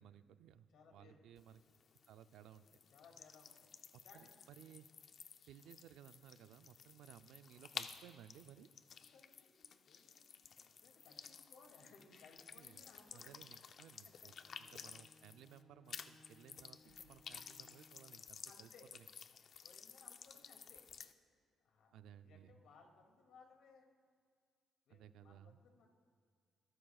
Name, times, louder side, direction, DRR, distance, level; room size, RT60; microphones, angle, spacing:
voice 1, 0.0-1.6 2.1-2.7 4.1-4.9 5.5-8.7 12.0-12.2 12.6-12.8 13.1-14.3 14.6-18.7 21.9-22.5 24.9-25.6, right 10 dB, 85° right, 11 dB, 0.5 m, -59 dB
voice 2, 0.7-1.3 2.9-3.7 4.0-4.4 9.1-13.4 14.0-14.1 18.5-18.9 19.2-20.9 21.6-23.9 24.9-25.9, left 4 dB, 80° left, 2 dB, 2.5 m, -64 dB
sound 1, 1.4-15.6 15.9-21.1, left 7 dB, 55° left, 0.6 m, -54 dB
Bowed string instrument, 14.2-18.4, left 3 dB, 35° left, 2.4 m, -68 dB
22.5 x 12.5 x 2.4 m, 2.1 s
cardioid pair, 90°, 0 cm